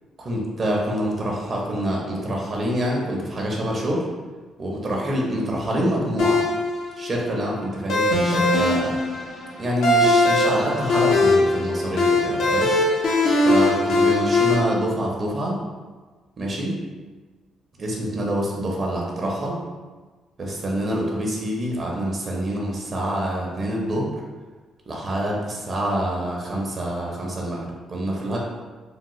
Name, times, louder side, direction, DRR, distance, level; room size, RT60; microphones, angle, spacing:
voice 1, 0.2-4.1 4.6-6.4 7.0-8.9 9.6-12.7 13.4-15.6 16.4-16.7 17.8-19.6 20.4-24.1 24.9-28.4, equal, 45° right, -2 dB, 0.7 m, -26 dB
sound 1, 6.2-14.5, left 2 dB, 80° left, 0.7 m, -20 dB
3.4 x 2.1 x 3.0 m, 1.4 s
cardioid pair, 90°, 0 cm